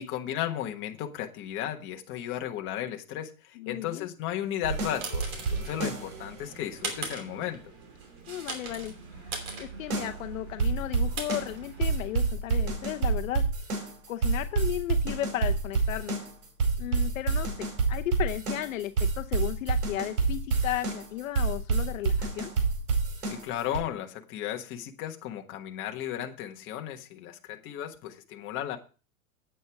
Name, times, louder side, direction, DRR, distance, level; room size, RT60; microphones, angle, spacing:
voice 1, 0.0-7.7 23.2-28.8, left 11 dB, 25° left, 4 dB, 1.3 m, -35 dB
voice 2, 3.6-4.1 8.3-8.9 9.3-13.4 14.1-16.2 16.8-22.5, left 14 dB, 65° left, 9 dB, 0.8 m, -35 dB
sound 1, 4.5-12.3, right 4 dB, 35° right, 2.9 m, -41 dB
sound 2, 4.6-6.3 9.9-10.2 10.6-23.8, right 4 dB, 85° right, 5.0 m, -28 dB
9.3 x 8.6 x 4.7 m, 0.34 s
supercardioid pair, 150°, 43 cm